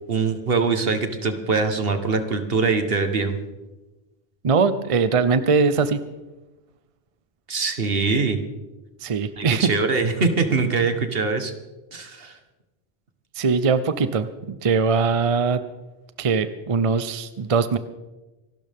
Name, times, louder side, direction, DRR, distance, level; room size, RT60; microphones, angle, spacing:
voice 1, 0.1-3.4 7.5-8.4 9.4-11.5 11.9-12.4, right 4 dB, 70° right, 7 dB, 1.6 m, -23 dB
voice 2, 4.4-6.0 9.0-9.7 13.4-15.6 16.2-17.8, right 5 dB, 40° right, 12 dB, 0.7 m, -21 dB
27.0 x 12.0 x 3.6 m, 1.1 s
omnidirectional pair, 1.0 m